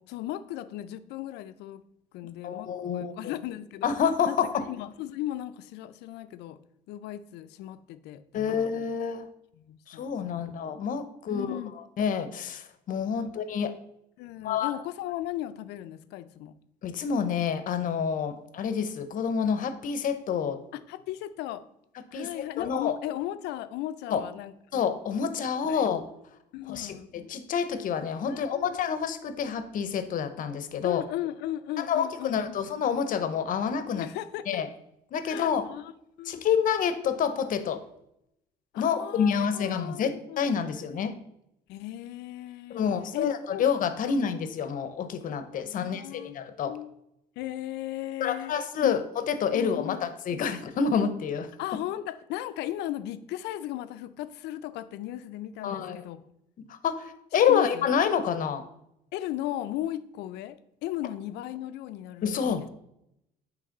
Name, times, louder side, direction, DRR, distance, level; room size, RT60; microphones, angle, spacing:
voice 1, 0.0-1.8 2.1-3.9 4.3-4.4 4.7-6.6 6.9-8.7 9.5-10.5 11.3-11.7 13.1-13.3 14.2-16.5 20.7-21.6 22.1-24.5 25.7-25.9 26.5-27.1 28.3-28.8 30.8-32.6 34.0-34.6 35.2-35.9 36.2-36.4 38.7-40.4 41.7-43.6 44.0-44.1 45.6-46.4 46.6-47.0 47.4-48.5 48.8-49.0 49.5-50.4 51.6-56.2 57.5-57.9 59.1-62.7, left 13 dB, 85° left, 12 dB, 0.4 m, -36 dB
voice 2, 2.4-3.3 3.8-4.6 8.3-9.3 9.9-11.6 12.0-13.7 14.4-14.7 16.8-20.6 22.1-23.0 24.1-24.2 24.7-26.0 26.7-31.0 31.8-34.1 34.5-34.7 35.1-35.6 36.3-37.8 38.8-41.2 42.7-46.7 48.2-51.5 55.6-56.0 56.7-58.6 62.2-62.7, left 7 dB, 55° left, 11 dB, 0.7 m, -28 dB
8.5 x 3.2 x 3.8 m, 0.80 s
cardioid pair, 110°, 17 cm